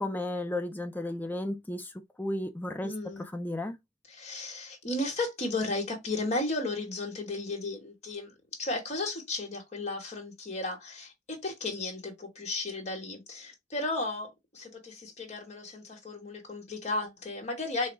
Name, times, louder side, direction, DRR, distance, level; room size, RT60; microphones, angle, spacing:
voice 1, 0.0-1.9 2.2-2.9 3.3-3.8, left 1 dB, 10° left, 0.5 m, -33 dB
voice 2, 2.8-3.2 4.1-8.3 8.6-17.9, left 2 dB, 35° left, 1.2 m, -34 dB
3.4 x 2.3 x 3.1 m
head